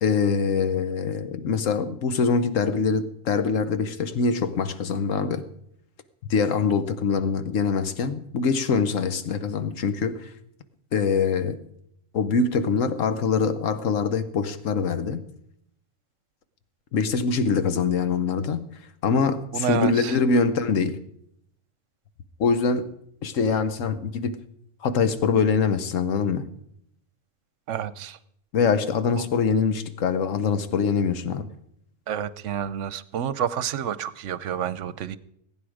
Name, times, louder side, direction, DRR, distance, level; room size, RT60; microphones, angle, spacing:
voice 1, 0.0-5.4 6.3-10.3 10.9-11.6 12.1-15.2 16.9-18.6 19.0-21.0 22.4-22.9 23.2-24.4 24.8-26.4 28.5-31.5, left 5 dB, 80° left, 11 dB, 1.3 m, -24 dB
voice 2, 19.5-20.2 27.7-28.2 29.2-29.3 32.1-35.2, right 9 dB, 75° right, 16 dB, 1.0 m, -29 dB
21.5 x 9.5 x 5.0 m, 0.73 s
omnidirectional pair, 1.3 m